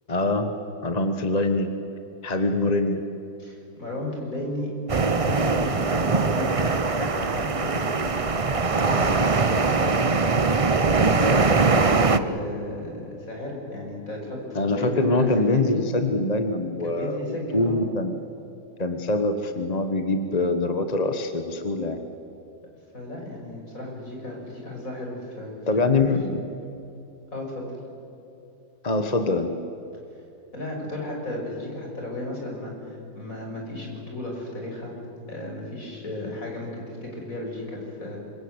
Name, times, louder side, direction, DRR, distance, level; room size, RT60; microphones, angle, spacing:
voice 1, 0.1-0.5 0.8-1.7 2.2-3.0 14.5-18.1 18.8-22.0 25.7-26.4 28.8-29.5, left 2 dB, 25° left, 7 dB, 1.2 m, -24 dB
voice 2, 3.4-15.9 16.8-17.8 22.9-26.2 27.3-27.8 30.5-35.0 35.3-38.2, left 1 dB, 45° left, 0 dB, 6.4 m, -34 dB
sound 1, 4.9-12.2, right 4 dB, 45° right, 0.4 m, -22 dB
26.5 x 24.0 x 8.1 m, 3.0 s
omnidirectional pair, 2.0 m